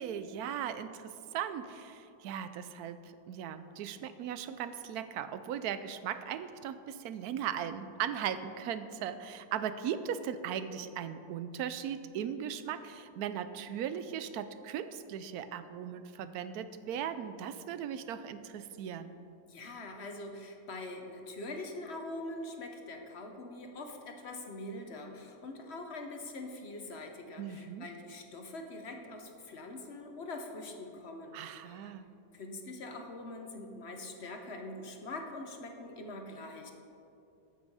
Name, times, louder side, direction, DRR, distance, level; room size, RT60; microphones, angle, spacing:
voice 1, 0.0-19.1 27.4-27.9 31.3-32.1, right 9 dB, 90° right, 12 dB, 1.1 m, -38 dB
voice 2, 19.5-31.9 32.3-36.7, left 2 dB, 50° left, 4 dB, 1.1 m, -43 dB
14.0 x 6.3 x 5.4 m, 2.7 s
omnidirectional pair, 1.6 m